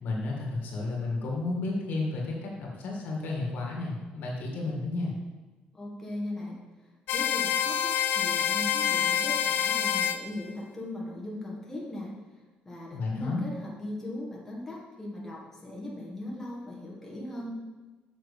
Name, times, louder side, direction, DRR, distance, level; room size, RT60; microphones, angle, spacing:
voice 1, 0.0-5.2 12.9-13.4, left 3 dB, 65° left, -1 dB, 2.0 m, -32 dB
voice 2, 5.7-12.1 12.6-17.5, left 1 dB, 10° left, -4 dB, 1.6 m, -39 dB
sound 1, 7.1-10.2, left 9 dB, 80° left, 0.5 m, -27 dB
6.7 x 5.7 x 5.4 m, 1.3 s
cardioid pair, 145°, 3 cm